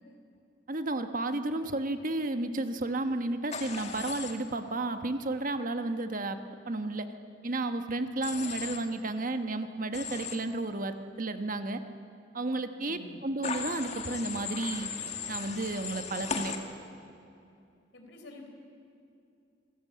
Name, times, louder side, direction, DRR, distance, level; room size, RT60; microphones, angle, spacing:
voice 1, 0.7-6.4 6.7-7.1 7.4-11.8 12.3-14.9 15.3-16.5, right 2 dB, 45° right, 8 dB, 1.2 m, -32 dB
Human voice / Train, 3.5-4.3 8.2-8.8 9.9-10.3 13.4-16.6, left 5 dB, 35° left, 1.9 m, -37 dB
voice 2, 12.8-13.2 17.9-18.5, left 2 dB, 65° left, 3 dB, 4.3 m, -49 dB
26.0 x 16.5 x 8.5 m, 2.6 s
head